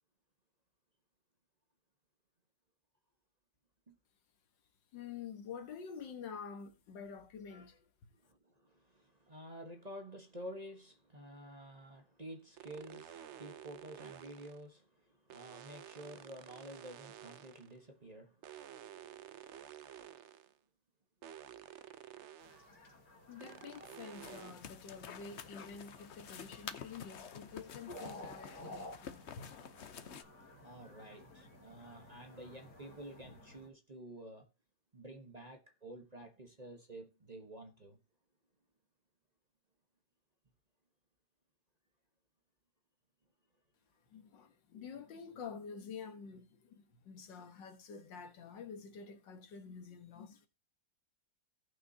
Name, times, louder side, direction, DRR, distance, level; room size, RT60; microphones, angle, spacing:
voice 1, 4.9-7.9 22.6-22.9 23.3-29.7 44.0-50.5, left 6 dB, 85° left, 2.0 m, -49 dB
voice 2, 8.1-18.4 23.8-23.9 30.6-34.5 34.9-38.0, right 1 dB, 25° right, 1.2 m, -50 dB
sound 1, 12.6-14.7 15.3-17.8 18.4-20.5 21.2-22.7 23.4-24.5, right 10 dB, 70° right, 0.6 m, -52 dB
sound 2, 22.4-33.7, left 1 dB, 70° left, 2.6 m, -54 dB
sound 3, 24.1-30.2, left 7 dB, 55° left, 0.8 m, -49 dB
17.5 x 6.0 x 2.7 m
omnidirectional pair, 1.9 m